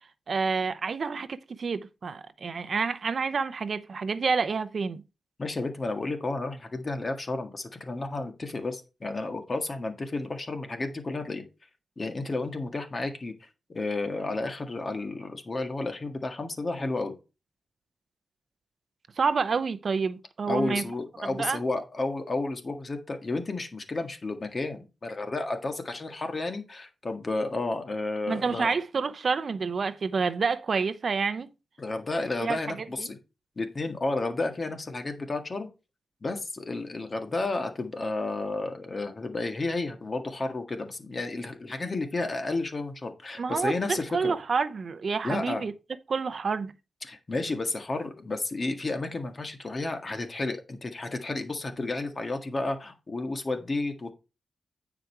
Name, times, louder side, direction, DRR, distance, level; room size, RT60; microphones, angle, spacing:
voice 1, 0.3-5.0 19.2-20.9 21.3-21.6 28.3-31.5 32.4-33.1 43.4-45.7 46.1-46.7, right 5 dB, 50° right, 0.6 m, -28 dB
voice 2, 5.4-11.4 12.0-13.3 13.7-17.1 20.5-28.7 31.8-33.2 33.6-35.7 36.2-44.4 45.2-45.6 47.0-54.1, left 2 dB, 35° left, 1.8 m, -32 dB
9.2 x 5.1 x 4.5 m
wide cardioid pair, 115°, 0 cm